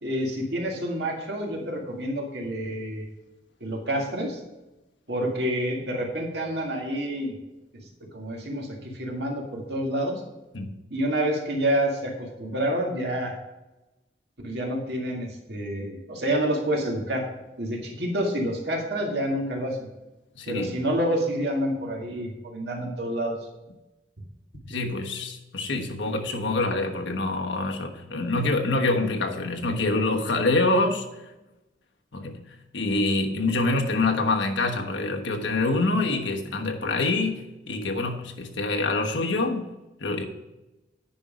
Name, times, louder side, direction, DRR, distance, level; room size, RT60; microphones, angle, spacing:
voice 1, 0.0-3.1 3.6-4.4 5.1-7.3 8.1-10.2 10.9-13.4 14.4-17.3 17.6-19.9 20.5-23.4, right 1 dB, 65° right, 0 dB, 1.9 m, -28 dB
voice 2, 20.4-20.8 24.6-31.0 32.1-32.4 32.7-39.7 40.0-40.2, left 2 dB, 85° left, 2 dB, 1.2 m, -26 dB
10.0 x 5.5 x 5.0 m, 1.0 s
head